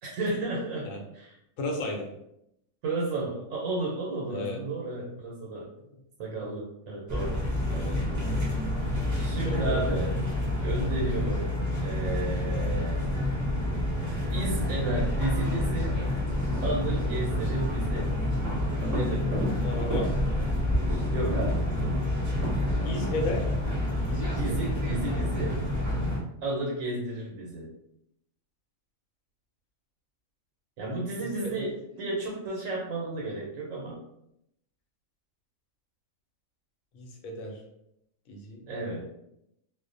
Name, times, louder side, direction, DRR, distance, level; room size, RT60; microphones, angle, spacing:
voice 1, 0.0-0.9 1.1-1.3 2.8-5.7 6.2-7.4 9.2-10.1 10.6-11.5 11.8-13.1 14.3-16.0 16.6-18.1 18.9-19.4 21.1-21.7 24.4-25.6 26.4-27.7 30.8-34.0 38.7-39.0, right 2 dB, 80° right, -2 dB, 1.0 m, -32 dB
voice 2, 1.6-2.1 4.3-4.6 7.7-8.0 9.4-10.0 19.6-20.1 22.8-23.5 24.0-24.5 31.2-31.7 36.9-37.6 38.3-38.6, left 1 dB, 80° left, 1 dB, 1.0 m, -34 dB
sound 1, 7.1-26.2, left 1 dB, 20° right, 0.5 m, -28 dB
2.4 x 2.0 x 2.5 m, 0.79 s
omnidirectional pair, 1.4 m